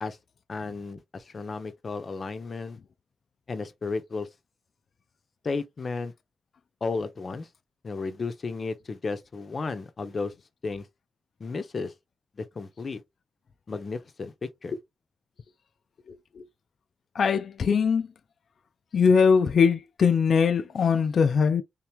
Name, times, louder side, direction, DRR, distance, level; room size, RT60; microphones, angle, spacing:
voice 1, 0.5-2.8 3.5-4.3 5.4-6.1 6.8-7.5 7.8-10.3 10.6-10.9 11.4-11.9 12.4-13.0 13.7-14.7, left 4 dB, 45° left, 0.8 m, -33 dB
voice 2, 17.2-18.1 18.9-21.6, left 6 dB, 65° left, 0.4 m, -21 dB
3.6 x 2.9 x 3.4 m
cardioid pair, 100°, 0 cm